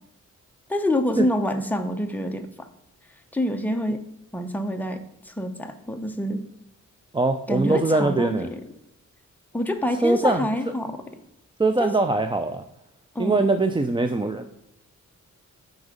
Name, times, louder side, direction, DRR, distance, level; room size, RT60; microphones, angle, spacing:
voice 1, 0.7-2.7 3.3-4.0 4.3-6.4 7.5-8.6 9.5-11.0 11.8-12.0 13.1-13.4, left 1 dB, 5° left, 5 dB, 0.8 m, -27 dB
voice 2, 7.1-8.5 10.0-10.5 11.6-12.6 13.2-14.5, right 2 dB, 15° right, 7 dB, 0.4 m, -22 dB
8.1 x 5.0 x 5.0 m, 0.86 s
wide cardioid pair, 120°, 30 cm